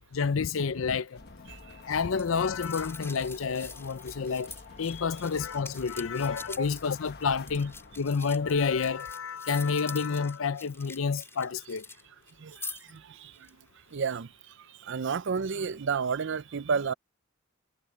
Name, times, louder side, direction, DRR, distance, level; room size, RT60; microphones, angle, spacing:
voice 1, 0.1-1.2 1.9-4.5 4.8-11.9, left 5 dB, 75° left, 0.6 m, -29 dB
sound 1, 1.2-9.0, left 3 dB, 55° left, 1.2 m, -48 dB
sound 2, 2.2-12.0 12.3-13.0 13.3-13.5, left 4 dB, 15° left, 3.8 m, -45 dB
voice 2, 12.4-13.4 13.9-14.3 14.8-16.9, right 5 dB, 65° right, 0.5 m, -31 dB
head